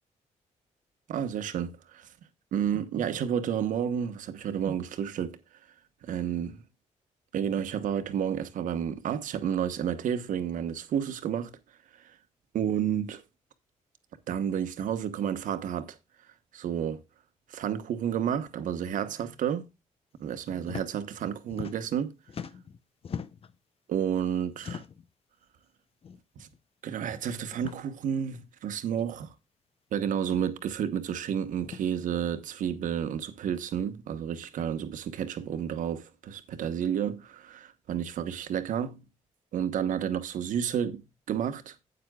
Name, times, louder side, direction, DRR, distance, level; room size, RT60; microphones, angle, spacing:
voice 1, 1.1-2.1 2.5-5.4 6.0-6.6 7.3-11.6 12.0-12.1 12.5-13.2 14.3-16.0 16.5-17.0 17.5-19.7 20.2-22.1 23.9-24.8 26.4-26.5 26.8-29.3 29.9-39.1 39.5-41.7, right 8 dB, 80° right, 1.2 m, -31 dB
sound 1, 20.6-20.9 21.2-22.0 22.3-23.5 24.5-25.1 26.0-26.2 26.5-26.6 27.5-27.8 28.9-29.0 30.2-30.5 31.6-31.8, left 7 dB, 45° left, 0.7 m, -40 dB
12.5 x 8.8 x 2.3 m
cardioid pair, 95°, 13 cm